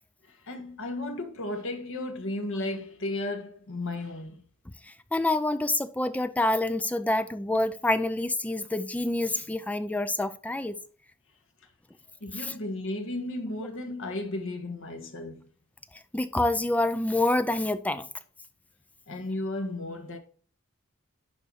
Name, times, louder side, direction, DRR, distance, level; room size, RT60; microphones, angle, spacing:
voice 1, 0.3-4.4 12.2-15.5 19.1-20.2, left 2 dB, 65° left, 1.4 m, -34 dB
voice 2, 4.9-10.8 12.4-12.5 16.1-18.1, left 2 dB, 5° left, 0.4 m, -27 dB
11.0 x 4.2 x 4.7 m
head